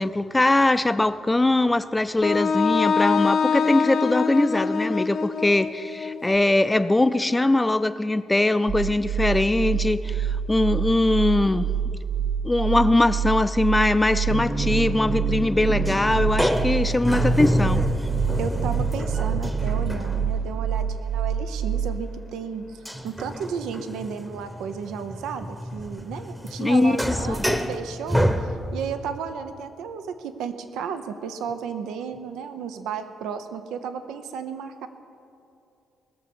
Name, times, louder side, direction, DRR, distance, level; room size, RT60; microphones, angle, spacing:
voice 1, 0.0-11.7 12.4-17.8 26.6-27.4, left 2 dB, 15° left, 13 dB, 0.5 m, -21 dB
Wind instrument woodwind instrument, 2.2-6.2, left 5 dB, 55° left, 0.7 m, -24 dB
sound 1, 8.7-22.0, right 7 dB, 45° right, 1.3 m, -27 dB
sound 2, 14.3-20.7 22.9-29.0, equal, 5° right, 0.9 m, -28 dB
voice 2, 18.4-28.2 28.7-34.9, right 6 dB, 85° right, 9 dB, 0.8 m, -33 dB
20.0 x 6.8 x 7.0 m, 2.6 s
cardioid pair, 90°, 0 cm